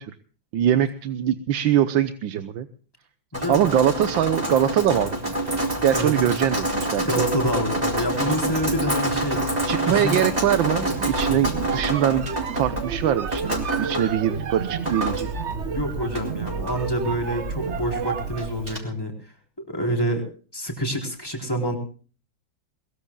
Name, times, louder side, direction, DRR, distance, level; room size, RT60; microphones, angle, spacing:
voice 1, 0.5-2.7 3.5-5.2 5.8-7.0 9.7-15.3, right 10 dB, 80° right, 11 dB, 1.7 m, -22 dB
voice 2, 3.3-3.6 5.9-6.1 7.0-9.4 9.9-10.2 15.6-19.1 19.6-20.2 20.5-21.8, equal, 10° left, 1 dB, 4.6 m, -27 dB
Drip, 3.3-18.8, right 1 dB, 20° right, 4.3 m, -28 dB
sound 1, 10.8-18.6, right 6 dB, 50° right, 0.9 m, -31 dB
22.0 x 22.0 x 2.4 m, 0.40 s
omnidirectional pair, 2.1 m